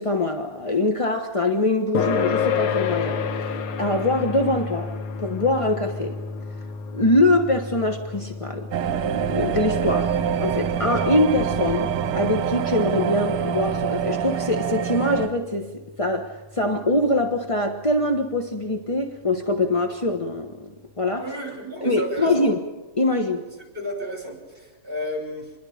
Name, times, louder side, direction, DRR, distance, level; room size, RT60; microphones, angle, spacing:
voice 1, 0.0-4.9 5.2-6.2 6.9-8.7 9.3-15.7 16.0-20.7 21.0-21.3 21.8-22.6 23.0-23.4, left 2 dB, 25° left, 5 dB, 0.7 m, -23 dB
sound 1, 1.9-16.9, left 6 dB, 75° left, 2.0 m, -31 dB
sound 2, 8.7-15.3, right 8 dB, 80° right, 1.8 m, -25 dB
voice 2, 21.2-22.5 23.7-25.5, equal, 25° right, 2 dB, 5.8 m, -32 dB
27.0 x 21.5 x 5.1 m, 1.2 s
omnidirectional pair, 2.4 m